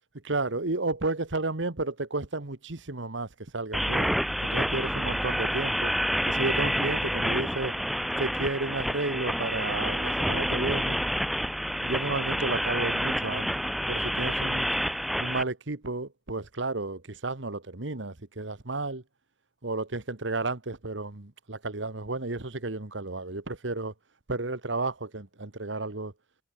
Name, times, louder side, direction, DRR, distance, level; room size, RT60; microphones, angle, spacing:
voice 1, 0.2-4.1 4.4-5.9 6.3-7.7 8.2-11.0 11.7-13.5 13.9-14.7 15.2-19.0 19.6-23.9 24.3-26.1, right 3 dB, 75° right, 1.6 m, -32 dB
sound 1, 3.7-15.4, equal, ahead, 0.5 m, -28 dB
head